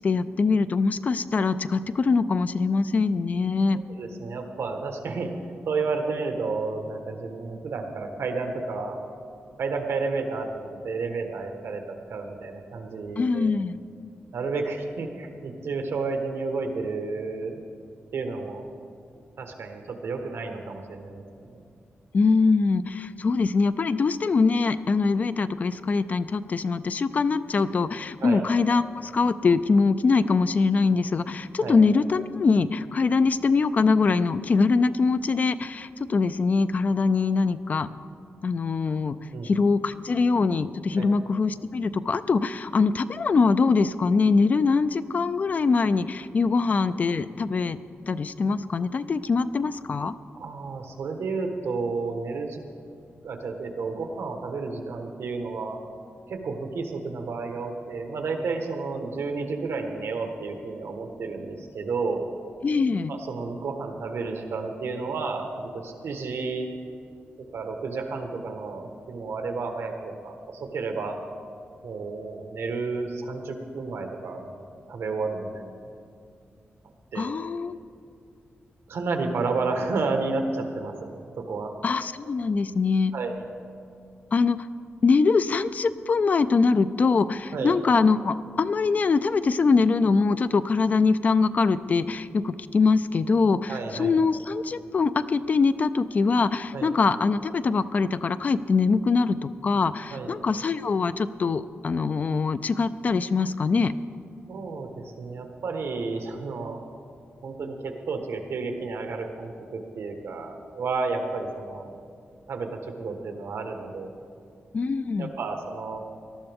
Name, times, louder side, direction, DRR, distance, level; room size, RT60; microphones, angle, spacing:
voice 1, 0.0-3.8 13.2-13.8 22.1-37.9 38.4-39.2 39.4-47.8 48.1-50.1 62.6-63.1 77.2-77.8 81.8-83.1 84.3-84.7 85.0-103.9 114.7-115.3, left 4 dB, 40° left, 13 dB, 0.3 m, -23 dB
voice 2, 3.9-5.3 5.7-9.0 9.6-13.5 14.3-17.6 18.1-18.7 19.4-21.6 28.2-28.4 31.6-31.8 39.3-39.5 41.0-41.1 50.3-52.6 53.2-55.8 56.3-62.3 63.1-66.7 67.5-71.2 71.8-75.8 77.1-77.3 78.9-81.7 83.1-83.4 87.5-87.8 93.7-94.1 96.7-96.9 100.1-100.3 104.5-106.8 107.4-111.9 112.5-114.1 115.2-116.0, right 4 dB, 85° right, 4 dB, 1.4 m, -31 dB
18.5 x 12.5 x 3.5 m, 2.4 s
wide cardioid pair, 175°, 4 cm